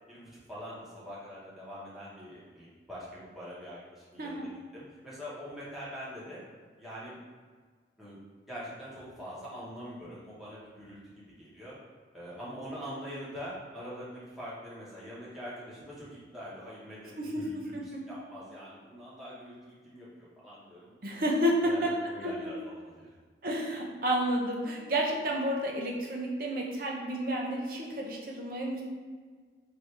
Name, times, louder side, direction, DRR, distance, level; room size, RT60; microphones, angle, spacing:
voice 1, 0.1-6.4 6.8-7.2 8.0-8.2 8.5-11.8 12.1-20.1 20.4-20.9 21.6-23.2, equal, ahead, -10 dB, 1.1 m, -44 dB
voice 2, 4.2-4.5 17.2-18.1 21.0-22.0 22.2-22.5 23.4-28.8, equal, 50° right, -1 dB, 0.7 m, -31 dB
3.3 x 2.7 x 4.4 m, 1.5 s
head